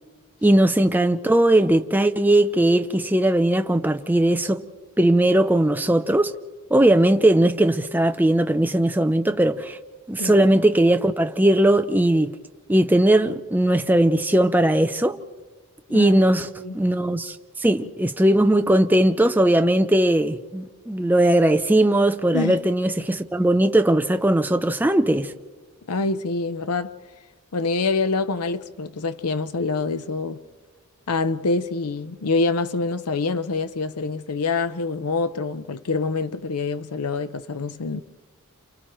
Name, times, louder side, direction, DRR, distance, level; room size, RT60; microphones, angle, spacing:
voice 1, 0.4-4.6 5.0-6.3 6.7-9.8 10.1-12.4 12.7-15.2 15.9-16.5 16.7-25.3, right 1 dB, 10° right, 0.5 m, -19 dB
voice 2, 10.2-10.5 15.9-16.1 16.6-16.8 22.3-22.6 25.9-26.9 27.5-30.4 31.1-38.0, left 3 dB, 85° left, 0.7 m, -26 dB
29.5 x 28.5 x 3.1 m
head